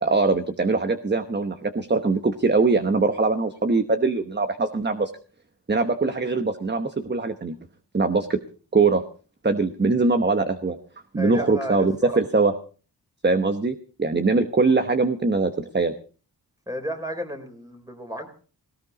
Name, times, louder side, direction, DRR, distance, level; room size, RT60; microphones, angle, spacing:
voice 1, 0.0-5.1 5.7-7.5 7.9-8.4 8.7-9.0 9.4-10.8 11.1-12.5 13.2-15.9, right 3 dB, 25° right, 9 dB, 1.1 m, -22 dB
voice 2, 11.2-12.2 16.7-18.3, equal, 10° right, 5 dB, 3.9 m, -33 dB
18.5 x 18.0 x 4.0 m, 0.40 s
wide cardioid pair, 90°, 42 cm